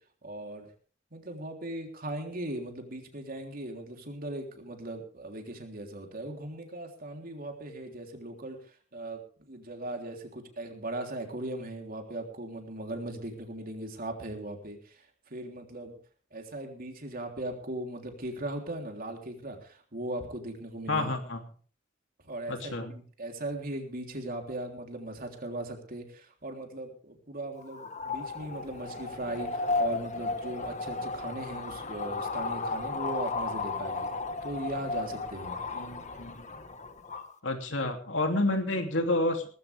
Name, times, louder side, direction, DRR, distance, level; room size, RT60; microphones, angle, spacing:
voice 1, 0.2-0.7 1.1-16.0 16.3-21.1 22.2-34.1 34.4-35.6, right 1 dB, 50° right, 3 dB, 3.6 m, -38 dB
voice 2, 20.9-21.4 22.5-22.9 35.8-36.5 37.4-39.5, left 2 dB, 75° left, 4 dB, 3.0 m, -29 dB
sound 1, 27.6-37.3, left 3 dB, 40° left, 1.6 m, -34 dB
19.0 x 15.5 x 3.5 m, 0.42 s
head